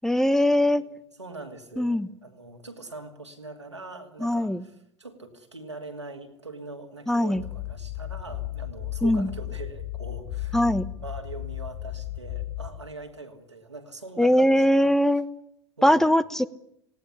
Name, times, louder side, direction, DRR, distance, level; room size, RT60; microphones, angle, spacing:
voice 1, 0.0-0.8 1.8-2.1 4.2-4.6 7.1-7.4 9.0-9.3 10.5-10.9 14.2-15.3 15.8-16.5, left 1 dB, 5° left, 16 dB, 0.8 m, -21 dB
voice 2, 1.2-10.6 11.0-15.0 15.8-16.1, right 3 dB, 90° right, 3 dB, 2.6 m, -42 dB
sound 1, 7.4-12.8, left 14 dB, 35° left, 1.6 m, -35 dB
19.0 x 17.5 x 9.9 m, 0.75 s
figure-of-eight pair, 80°, 14 cm